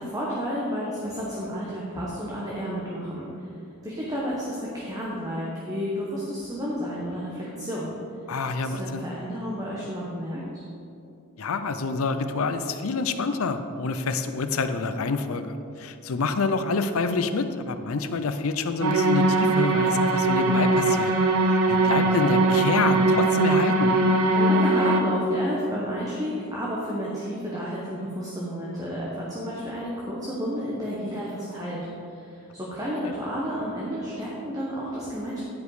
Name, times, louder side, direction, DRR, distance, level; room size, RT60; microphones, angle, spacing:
voice 1, 0.0-3.3 3.8-7.9 8.6-10.6 24.3-35.4, equal, 15° right, -6 dB, 1.0 m, -31 dB
voice 2, 8.3-9.1 11.4-21.1 21.4-23.9, left 4 dB, 70° left, 9 dB, 0.5 m, -27 dB
sound 1, 18.8-25.0, right 2 dB, 75° right, 0.8 m, -21 dB
9.9 x 5.2 x 4.8 m, 2.6 s
head